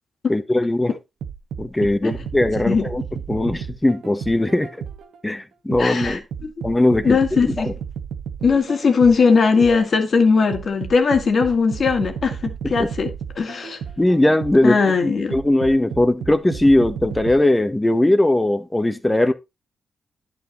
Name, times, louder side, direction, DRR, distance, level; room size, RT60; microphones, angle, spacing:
voice 1, 0.3-0.9 1.6-3.0 3.3-4.7 5.2-6.2 6.6-7.2 7.5-7.7 12.6-12.9 14.0-19.3, left 1 dB, 15° left, 1.3 m, -19 dB
sound 1, 1.2-5.2 5.7-10.0 10.5-14.8 15.3-17.4, right 7 dB, 85° right, 1.4 m, -33 dB
voice 2, 5.8-6.2 7.0-7.7 8.4-13.1 13.4-13.8 14.6-15.3, left 5 dB, 55° left, 2.4 m, -18 dB
10.5 x 6.2 x 4.0 m
cardioid pair, 75°, 0 cm